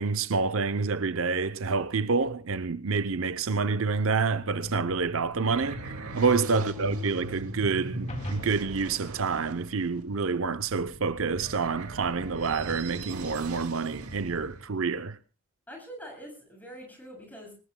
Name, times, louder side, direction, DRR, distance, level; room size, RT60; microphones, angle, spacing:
voice 1, 0.0-15.2, right 4 dB, 65° right, 0.7 m, -28 dB
sound 1, 4.2-14.6, right 1 dB, 85° right, 2.1 m, -40 dB
voice 2, 6.5-7.1 15.7-17.5, equal, 10° left, 7.5 m, -45 dB
sound 2, 8.1-10.6, equal, 30° left, 2.5 m, -43 dB
24.5 x 20.0 x 2.2 m
head